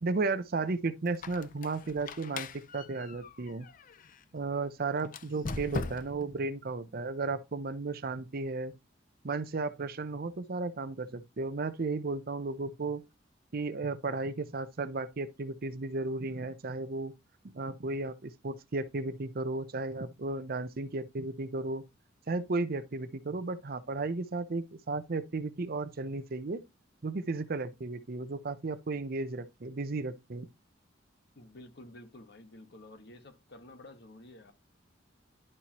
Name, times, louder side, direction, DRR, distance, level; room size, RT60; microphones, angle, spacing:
voice 1, 0.0-3.7 4.3-8.7 9.2-13.0 13.5-17.1 17.5-21.8 22.3-26.6 27.0-30.5, right 3 dB, 50° right, 0.6 m, -34 dB
Squeak, 1.1-4.2 5.0-6.3, left 3 dB, 45° left, 0.5 m, -41 dB
voice 2, 31.3-34.5, left 1 dB, 60° left, 1.2 m, -51 dB
11.0 x 4.4 x 2.9 m
head